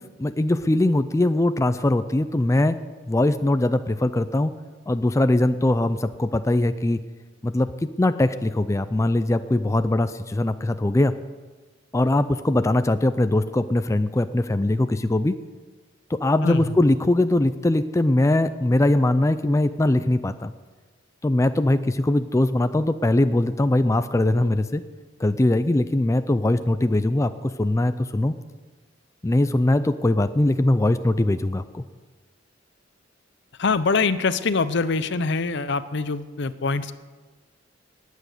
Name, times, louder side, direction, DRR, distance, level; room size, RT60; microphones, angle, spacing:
voice 1, 0.2-2.7 3.1-4.5 4.9-7.0 7.4-7.7 8.0-11.1 11.9-15.3 16.1-20.5 21.2-24.8 25.2-28.3 29.2-31.8, left 1 dB, 15° left, 11 dB, 0.4 m, -21 dB
voice 2, 33.6-36.9, left 4 dB, 65° left, 14 dB, 0.7 m, -24 dB
19.0 x 8.3 x 6.6 m, 1.3 s
head